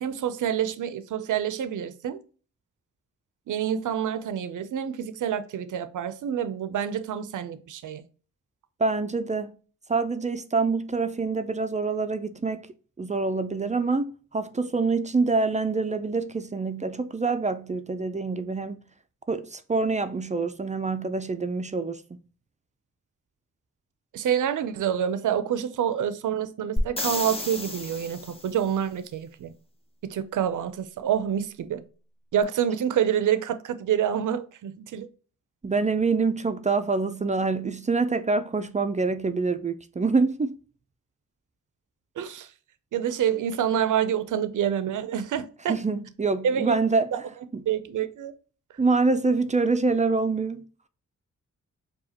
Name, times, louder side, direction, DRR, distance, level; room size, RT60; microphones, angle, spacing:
voice 1, 0.0-2.2 3.5-8.0 24.1-29.5 30.0-31.8 32.3-35.1 42.2-42.5 42.9-45.8 46.4-46.8 47.1-47.2 47.7-48.3, right 9 dB, 70° right, 0.5 m, -27 dB
voice 2, 8.8-9.6 9.9-12.7 13.0-18.8 19.3-22.2 35.6-40.6 45.7-47.1 47.5-47.6 48.8-50.6, right 4 dB, 25° right, 0.4 m, -26 dB
sound 1, 26.8-28.6 32.4-32.5, left 1 dB, 20° left, 0.7 m, -31 dB
4.9 x 2.3 x 2.8 m
cardioid pair, 60°, 32 cm